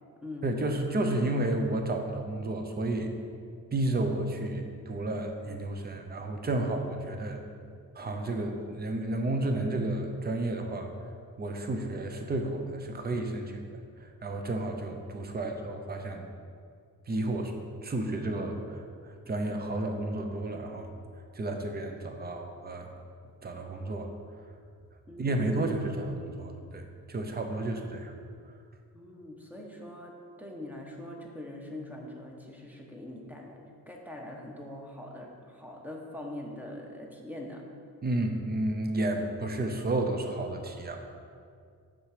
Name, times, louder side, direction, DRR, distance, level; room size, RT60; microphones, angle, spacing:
voice 1, 0.4-3.1 3.7-7.4 8.0-10.9 11.4-13.6 14.0-16.3 17.1-17.5 17.8-18.8 19.3-20.9 21.3-22.9 23.4-24.1 25.2-28.1 38.0-41.0, right 2 dB, 25° right, 4 dB, 0.8 m, -31 dB
voice 2, 25.1-25.6 28.9-33.6 33.9-37.7, left 1 dB, 5° right, 0 dB, 1.1 m, -43 dB
6.8 x 6.5 x 4.9 m, 2.2 s
wide cardioid pair, 125°, 35 cm